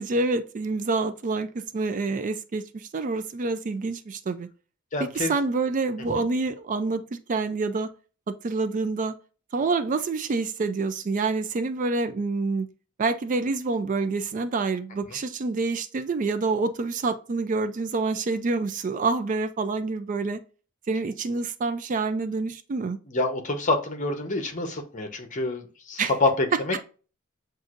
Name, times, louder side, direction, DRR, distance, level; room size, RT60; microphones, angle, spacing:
voice 1, 0.0-4.5 5.0-7.9 8.3-9.1 9.5-12.7 13.0-20.4 20.9-23.0 26.0-26.1, right 3 dB, 40° right, 0.4 m, -27 dB
voice 2, 4.9-5.3 23.1-26.8, left 2 dB, 40° left, 0.9 m, -27 dB
7.8 x 2.6 x 2.5 m
head